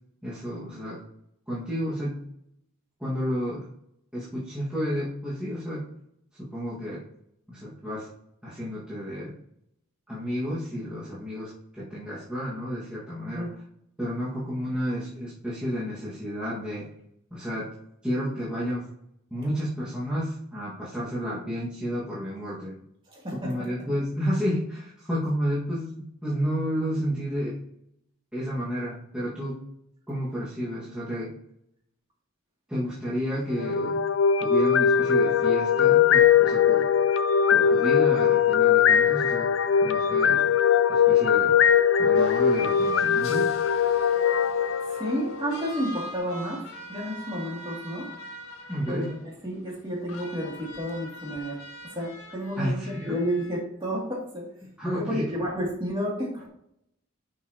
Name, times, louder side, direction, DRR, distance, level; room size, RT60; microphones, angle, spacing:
voice 1, 0.2-1.0 1.5-2.2 3.0-3.7 4.1-5.9 6.4-7.0 7.5-8.1 8.4-9.4 10.1-13.5 14.0-16.9 17.3-17.7 18.0-18.9 19.3-22.7 23.4-27.6 28.3-29.6 30.1-31.3 32.7-34.0 34.4-36.9 37.5-39.5 39.8-40.4 40.9-41.6 42.0-43.5 48.7-49.1 52.6-53.2 54.8-55.3, equal, 5° right, -10 dB, 1.9 m, -31 dB
voice 2, 23.1-23.8 44.1-44.3 44.9-48.1 48.9-51.6 51.9-54.5 54.9-56.5, equal, 25° right, -4 dB, 2.7 m, -31 dB
sound 1, 33.5-45.6, left 8 dB, 65° left, 0.4 m, -21 dB
sound 2, 42.1-53.6, equal, 85° left, 1.8 m, -44 dB
10.5 x 5.6 x 3.0 m, 0.75 s
head